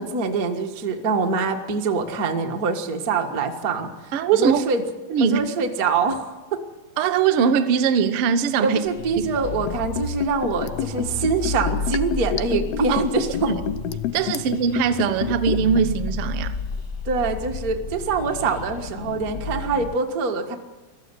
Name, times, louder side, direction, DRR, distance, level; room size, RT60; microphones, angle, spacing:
voice 1, 0.0-4.8 5.2-6.6 8.6-13.6 17.0-20.6, right 4 dB, 55° right, 1.0 m, -24 dB
voice 2, 4.1-4.6 5.1-5.4 7.0-8.8 12.9-13.0 13.5-13.6 14.1-16.5, right 7 dB, 80° right, 1.2 m, -21 dB
sound 1, 8.8-19.9, left 3 dB, 65° left, 0.7 m, -32 dB
Liquid, 9.6-15.8 16.1-16.2, left 10 dB, 90° left, 2.8 m, -28 dB
21.5 x 14.0 x 9.7 m
omnidirectional pair, 4.3 m